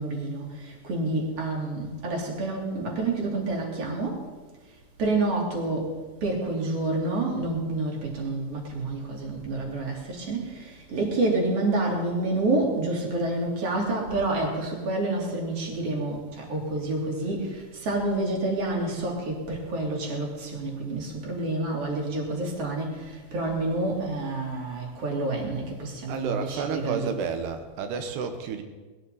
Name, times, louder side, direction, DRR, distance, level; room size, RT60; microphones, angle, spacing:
voice 1, 0.0-4.3 5.0-5.9 6.2-27.1, right 2 dB, 35° right, -1 dB, 3.6 m, -28 dB
voice 2, 26.1-28.6, right 6 dB, 70° right, 6 dB, 3.1 m, -30 dB
21.0 x 14.0 x 4.2 m, 1.3 s
omnidirectional pair, 5.3 m